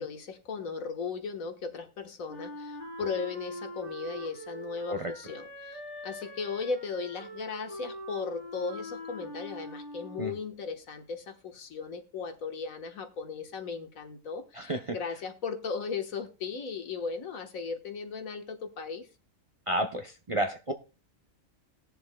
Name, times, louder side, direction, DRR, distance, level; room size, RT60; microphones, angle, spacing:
voice 1, 0.0-19.1, left 5 dB, 85° left, 1.7 m, -37 dB
Wind instrument woodwind instrument, 2.3-10.5, equal, 20° right, 2.8 m, -43 dB
voice 2, 14.5-15.0 19.7-20.7, right 1 dB, 35° right, 0.6 m, -31 dB
20.0 x 6.8 x 2.2 m
omnidirectional pair, 1.4 m